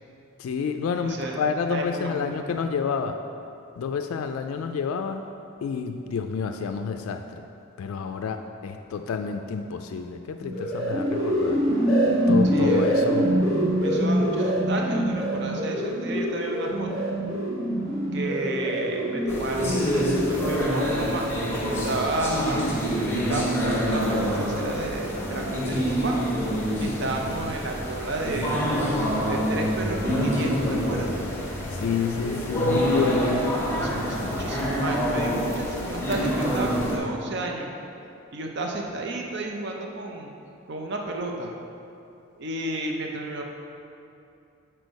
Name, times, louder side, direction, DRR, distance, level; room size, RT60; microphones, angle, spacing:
voice 1, 0.4-3.1 3.8-5.3 5.6-7.4 7.8-11.6 12.3-13.3 31.7-33.5, left 5 dB, 80° left, 6 dB, 0.3 m, -29 dB
voice 2, 1.0-2.4 12.4-12.9 13.8-17.1 18.1-21.3 21.7-22.8 23.1-26.2 26.8-28.7 29.3-30.5 30.8-31.2 33.7-37.7 38.3-40.3 40.7-41.5 42.4-43.4, right 2 dB, 55° right, 1 dB, 0.6 m, -32 dB
sound 1, 10.4-20.9, equal, 35° right, 1.7 m, -25 dB
sound 2, 19.3-37.0, equal, 10° left, 0.9 m, -26 dB
6.3 x 4.4 x 5.2 m, 2.6 s
head